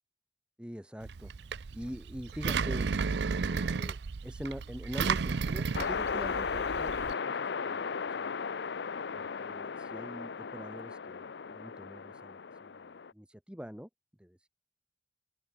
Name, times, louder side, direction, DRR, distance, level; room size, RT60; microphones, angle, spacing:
voice 1, 0.6-1.3 1.7-4.0 4.2-7.8 8.2-8.3 9.1-13.9 14.2-14.5, equal, 5° right, 1.5 m, -44 dB
Engine, 1.0-7.1, right 5 dB, 70° right, 0.5 m, -33 dB
sound 1, 5.7-13.1, left 5 dB, 70° left, 0.6 m, -36 dB
open air
head